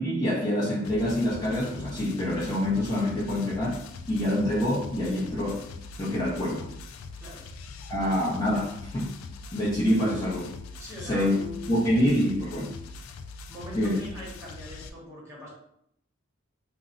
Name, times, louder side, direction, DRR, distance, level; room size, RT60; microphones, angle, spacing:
voice 1, 0.0-3.8 4.1-5.6 6.0-6.7 7.9-9.1 9.5-10.5 11.0-11.3 11.7-12.7 13.7-14.0, left 1 dB, 20° left, -8 dB, 0.6 m, -26 dB
sound 1, 0.8-14.9, left 3 dB, 80° left, 0.3 m, -42 dB
voice 2, 7.2-7.5 10.8-12.1 13.5-15.5, left 1 dB, 15° right, -6 dB, 1.0 m, -42 dB
2.5 x 2.0 x 3.8 m, 0.74 s
head